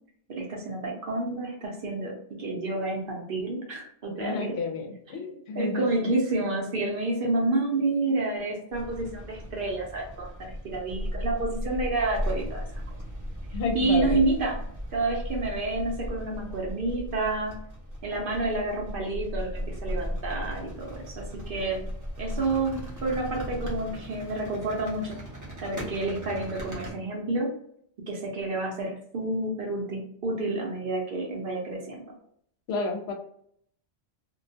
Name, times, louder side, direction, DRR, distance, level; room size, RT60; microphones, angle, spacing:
voice 1, 0.3-4.6 5.5-12.6 13.7-14.6 14.9-17.6 18.0-21.9 22.2-25.2 25.6-27.5 28.1-32.1, right 2 dB, 60° right, 0 dB, 0.7 m, -29 dB
voice 2, 4.2-6.1 13.5-14.2 32.7-33.1, left 3 dB, 70° left, 2 dB, 0.8 m, -31 dB
sound 1, 8.7-26.9, equal, 20° right, 0.5 m, -36 dB
2.2 x 2.1 x 2.6 m, 0.66 s
omnidirectional pair, 1.2 m